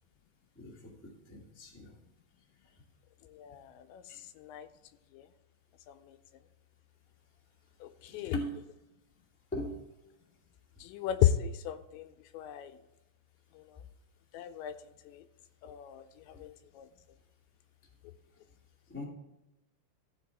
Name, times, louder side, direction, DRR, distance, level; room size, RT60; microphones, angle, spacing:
voice 1, 0.5-0.9 1.3-1.9 8.2-8.6 9.5-9.7 18.9-19.0, equal, 15° left, -3 dB, 0.4 m, -39 dB
voice 2, 3.3-4.0 4.4-4.7 5.1-5.3 5.9-6.2 7.8-8.4 10.8-12.1 12.3-12.7 13.6-13.7 14.3-14.7 15.1-15.2 15.6-16.9, left 11 dB, 80° left, 10 dB, 2.9 m, -34 dB
15.5 x 5.5 x 4.0 m, 0.95 s
omnidirectional pair, 5.2 m